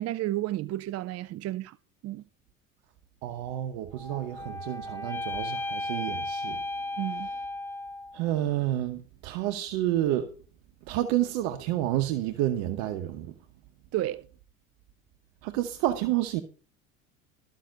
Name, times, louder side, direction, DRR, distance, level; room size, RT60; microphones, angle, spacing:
voice 1, 0.0-1.8 2.0-2.2 7.0-7.3 13.9-14.3, right 15 dB, 40° right, 0.5 m, -31 dB
voice 2, 3.2-6.6 8.1-10.3 10.9-13.3 15.4-16.4, right 13 dB, 65° right, 1.1 m, -29 dB
sound 1, 3.9-8.2, left 2 dB, 5° left, 2.0 m, -35 dB
13.5 x 5.8 x 6.4 m
hypercardioid pair, 70°, 39 cm